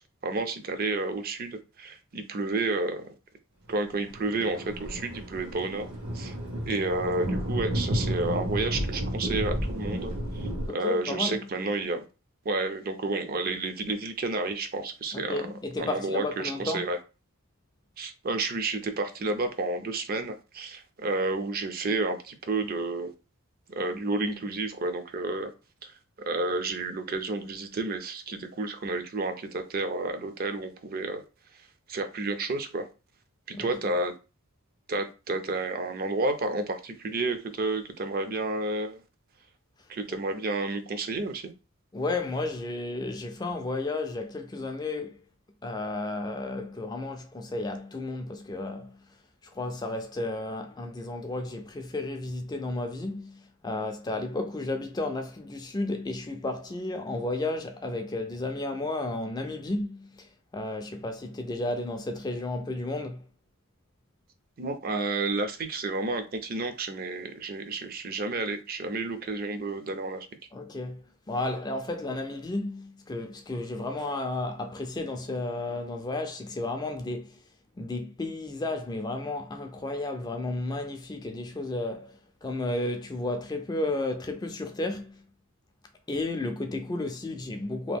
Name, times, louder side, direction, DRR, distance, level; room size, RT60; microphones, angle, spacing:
voice 1, 0.2-3.1 3.7-5.9 6.1-6.3 6.7-12.0 12.4-15.5 15.8-17.0 18.0-23.1 23.7-25.5 25.8-31.2 31.5-32.9 33.5-34.1 34.9-39.0 39.9-41.4 64.6-70.3, right 2 dB, 40° right, 0.5 m, -31 dB
Thunder, 3.8-10.7, equal, 90° right, 1.6 m, -32 dB
voice 2, 10.7-11.5 15.1-16.9 33.5-33.7 41.9-45.2 45.6-49.0 49.4-63.3 70.5-77.4 77.8-85.2 86.1-88.0, left 2 dB, 20° left, 0.3 m, -33 dB
2.9 x 2.2 x 3.5 m
head